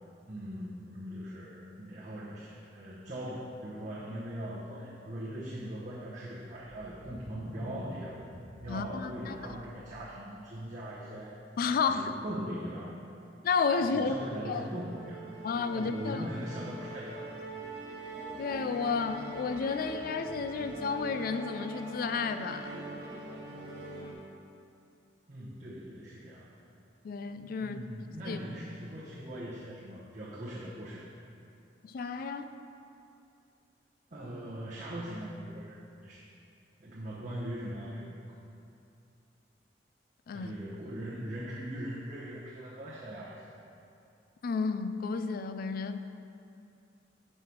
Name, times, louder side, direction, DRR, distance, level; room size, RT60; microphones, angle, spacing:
voice 1, 0.3-8.1 8.6-11.4 11.9-12.9 13.9-15.3 15.7-17.4 25.3-26.6 27.6-31.0 34.1-36.3 36.8-38.1 40.3-43.5, equal, 45° right, -8 dB, 0.9 m, -40 dB
sound 1, 6.6-10.3, equal, 10° left, 0.8 m, -48 dB
voice 2, 8.7-9.4 11.6-12.1 13.4-14.1 14.4-14.7 15.4-16.3 18.4-22.8 27.0-27.8 28.3-28.4 31.8-32.5 40.3-40.5 44.4-46.1, left 5 dB, 55° left, 10 dB, 0.3 m, -32 dB
Musical instrument, 14.4-24.1, right 2 dB, 65° right, 1.7 m, -43 dB
5.4 x 4.8 x 5.9 m, 2.6 s
head